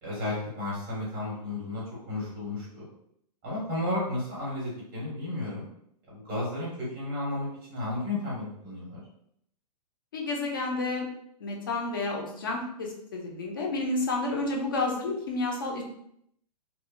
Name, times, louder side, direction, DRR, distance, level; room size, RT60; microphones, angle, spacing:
voice 1, 0.0-1.8 2.1-2.9 3.4-5.7 6.1-9.0, left 2 dB, 10° right, -7 dB, 0.7 m, -33 dB
voice 2, 10.1-11.1 11.4-15.8, left 2 dB, 30° left, 0 dB, 0.4 m, -30 dB
2.8 x 2.1 x 2.4 m, 0.72 s
hypercardioid pair, 180°, 21 cm